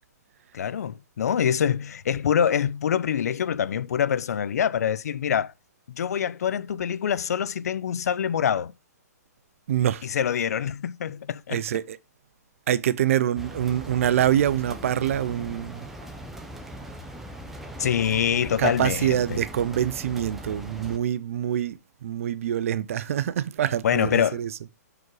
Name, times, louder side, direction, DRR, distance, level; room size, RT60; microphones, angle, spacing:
voice 1, 0.5-5.5 5.9-8.7 10.0-11.6 17.8-19.4 23.8-24.4, left 8 dB, 65° left, 0.5 m, -25 dB
voice 2, 9.7-10.1 11.5-12.0 12.7-15.9 18.6-24.5, right 10 dB, 55° right, 0.5 m, -25 dB
sound 1, 13.4-21.0, right 1 dB, 5° right, 0.8 m, -40 dB
6.1 x 4.9 x 4.7 m
hypercardioid pair, 150°, 9 cm